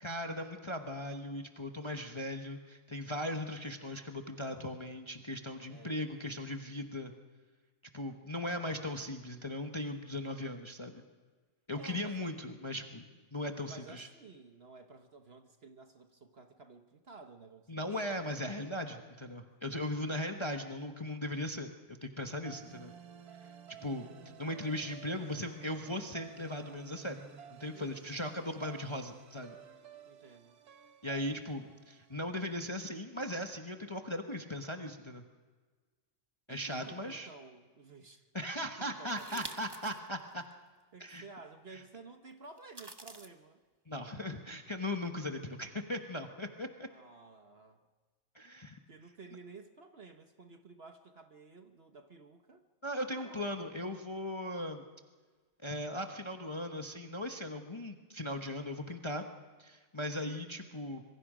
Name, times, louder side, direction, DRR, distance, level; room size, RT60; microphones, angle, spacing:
voice 1, 0.0-7.1 7.9-11.0 11.7-13.1 13.3-14.1 17.7-22.9 23.8-24.1 24.4-27.2 27.5-29.6 31.0-35.2 36.5-37.3 38.3-40.4 41.0-41.2 41.7-41.8 43.9-46.7 48.3-48.8 52.8-54.8 55.6-59.2 59.6-61.0, left 1 dB, 20° left, 4 dB, 1.0 m, -38 dB
voice 2, 5.7-6.4 8.4-8.8 11.7-12.4 13.6-18.4 19.6-19.8 27.7-28.1 30.0-30.6 36.5-38.3 38.8-39.6 40.9-43.6 46.9-47.8 48.9-52.7 53.2-53.7, right 4 dB, 45° right, 6 dB, 1.2 m, -53 dB
sound 1, 22.4-32.7, right 8 dB, 70° right, 1.5 m, -53 dB
sound 2, 39.1-40.0 40.5-40.6 42.6-43.3, right 2 dB, 20° right, 1.0 m, -47 dB
26.0 x 23.0 x 5.0 m, 1.4 s
omnidirectional pair, 1.7 m